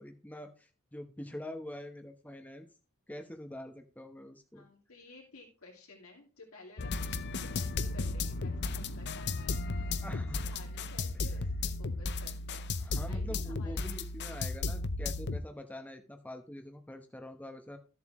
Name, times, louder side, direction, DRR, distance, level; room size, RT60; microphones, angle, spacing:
voice 1, 0.0-2.7 3.1-4.6 10.0-10.5 12.8-17.8, left 1 dB, 5° left, 5 dB, 1.0 m, -45 dB
voice 2, 4.5-9.6 10.4-13.8 14.2-14.5, left 3 dB, 75° left, -3 dB, 2.7 m, -54 dB
sound 1, 6.8-15.4, left 3 dB, 55° left, 0.7 m, -34 dB
13.5 x 7.3 x 3.1 m, 0.34 s
head